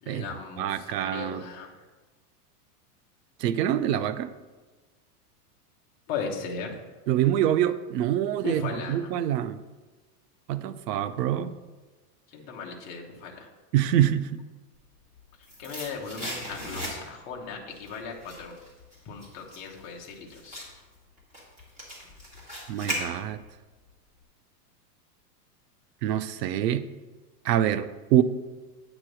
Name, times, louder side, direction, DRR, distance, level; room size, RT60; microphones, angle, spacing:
voice 1, 0.0-1.7 6.1-6.8 8.4-9.1 12.3-13.5 15.6-18.6 19.0-20.7, left 5 dB, 20° left, -1 dB, 0.5 m, -37 dB
voice 2, 0.6-1.4 3.4-4.3 7.1-8.6 8.9-9.6 10.5-11.5 13.7-14.4 22.7-23.4 26.0-26.9 27.4-28.2, right 11 dB, 80° right, 13 dB, 0.6 m, -25 dB
sound 1, 14.9-17.3 17.7-23.6 23.9-24.0, equal, 15° right, 1.7 m, -38 dB
8.7 x 3.0 x 6.3 m, 1.3 s
supercardioid pair, 165°, 48 cm